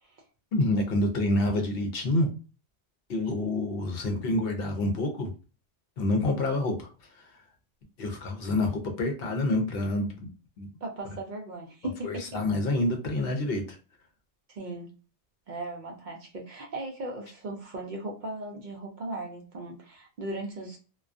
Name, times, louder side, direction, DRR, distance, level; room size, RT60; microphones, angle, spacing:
voice 1, 0.5-2.3 3.1-5.3 6.0-6.9 7.2-7.3 8.0-10.3 10.6-10.7 12.0-13.8, left 2 dB, 65° left, 3 dB, 0.8 m, -27 dB
voice 2, 10.8-12.4 14.5-14.9 15.5-20.8, right 2 dB, 55° right, 1 dB, 0.6 m, -37 dB
2.3 x 2.2 x 2.4 m, 0.34 s
omnidirectional pair, 1.1 m